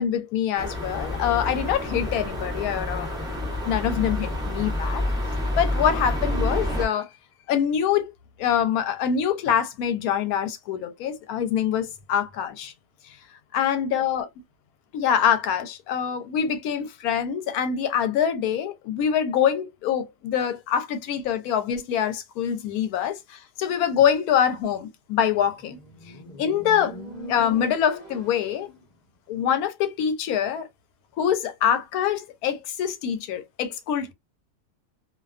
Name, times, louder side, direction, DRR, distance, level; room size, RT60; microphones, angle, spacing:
voice 1, 0.0-3.1 3.4-5.0 5.6-7.1 7.5-8.1 8.4-12.7 13.5-14.3 14.9-25.8 26.4-26.9 27.3-28.7 29.3-30.7 31.2-34.1, left 8 dB, 85° left, 1.1 m, -25 dB
sound 1, 0.6-6.9, left 1 dB, 5° right, 0.6 m, -28 dB
Motorcycle, 25.4-28.9, left 2 dB, 35° left, 1.0 m, -41 dB
2.5 x 2.2 x 2.3 m
omnidirectional pair, 1.5 m